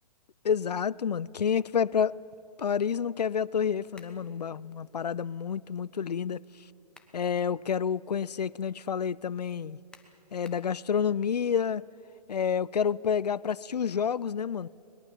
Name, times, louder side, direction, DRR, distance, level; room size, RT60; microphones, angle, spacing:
voice 1, 0.4-2.2 2.6-6.4 7.1-9.8 10.3-11.9 12.3-14.7, left 7 dB, 80° left, 0.4 m, -29 dB
sound 1, 4.0-4.3 6.6-7.2 7.7-7.8 9.9-10.7, left 2 dB, 5° left, 1.1 m, -55 dB
22.0 x 21.0 x 7.2 m
figure-of-eight pair, 125°, 21 cm